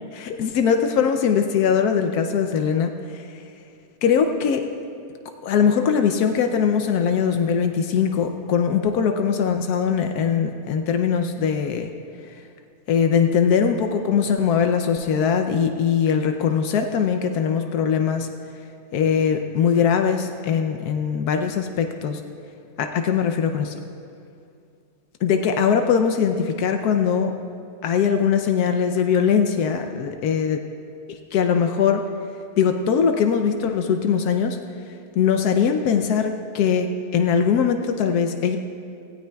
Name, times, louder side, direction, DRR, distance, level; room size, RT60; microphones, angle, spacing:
voice 1, 0.2-3.3 4.0-4.7 5.4-11.9 12.9-18.3 18.9-22.2 22.8-23.8 25.2-27.3 27.8-30.6 31.1-32.0 32.6-34.6 35.2-38.6, left 7 dB, 85° left, 5 dB, 1.2 m, -21 dB
17.5 x 16.0 x 2.3 m, 2.4 s
omnidirectional pair, 1.6 m